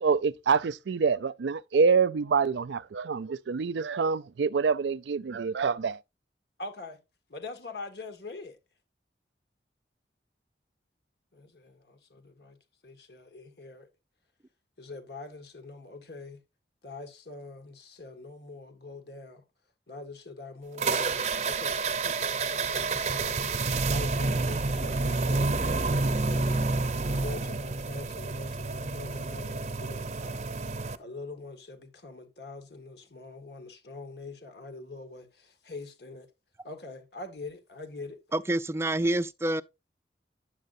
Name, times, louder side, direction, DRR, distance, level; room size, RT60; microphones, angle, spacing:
voice 1, 0.0-6.0, right 5 dB, 85° right, 0.4 m, -26 dB
voice 2, 6.6-7.0 7.3-8.6 11.3-12.6 12.8-13.9 14.8-16.4 16.8-19.4 19.9-23.4 23.9-26.6 27.1-30.5 31.0-36.3 36.6-38.2, left 3 dB, 70° left, 1.8 m, -44 dB
sound 1, 20.8-31.0, right 3 dB, 40° right, 0.7 m, -29 dB
voice 3, 38.3-39.6, right 1 dB, 15° right, 0.4 m, -27 dB
9.9 x 7.6 x 2.6 m
head